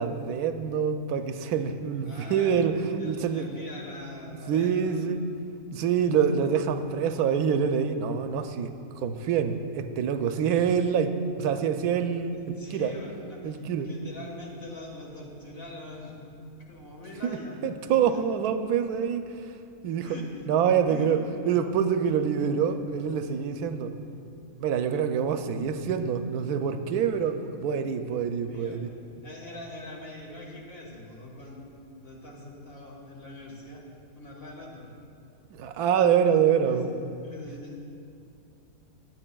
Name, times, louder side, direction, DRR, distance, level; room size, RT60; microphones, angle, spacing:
voice 1, 0.0-3.5 4.5-5.2 5.7-8.7 9.0-11.1 11.4-12.4 12.7-12.9 13.4-13.9 17.2-19.4 19.8-20.2 20.5-21.2 21.5-23.9 24.6-28.9 35.5-36.9, right 7 dB, 90° right, 8 dB, 1.1 m, -26 dB
voice 2, 2.0-2.6 3.0-5.1 12.4-16.3 16.7-18.2 20.0-20.2 20.9-21.1 28.4-28.8 29.2-31.6 32.0-33.8 34.2-34.9 36.5-36.8 37.2-37.8, left 1 dB, 40° left, -3 dB, 1.7 m, -43 dB
21.0 x 8.4 x 2.3 m, 2.5 s
omnidirectional pair, 1.6 m